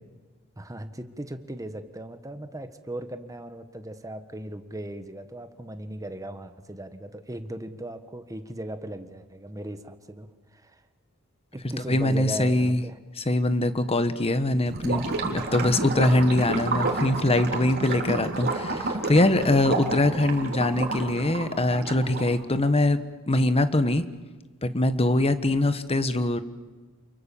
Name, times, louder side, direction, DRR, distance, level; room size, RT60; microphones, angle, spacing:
voice 1, 0.6-10.8 11.5-13.0 15.6-15.9 20.0-20.3, right 1 dB, 15° right, 9 dB, 1.5 m, -38 dB
voice 2, 11.9-12.8 13.2-23.0 23.3-24.0 24.6-26.4, left 1 dB, 25° left, 11 dB, 1.3 m, -23 dB
Gurgling / Liquid, 14.7-22.4, right 3 dB, 45° right, 3.6 m, -30 dB
29.0 x 22.5 x 7.2 m, 1.4 s
head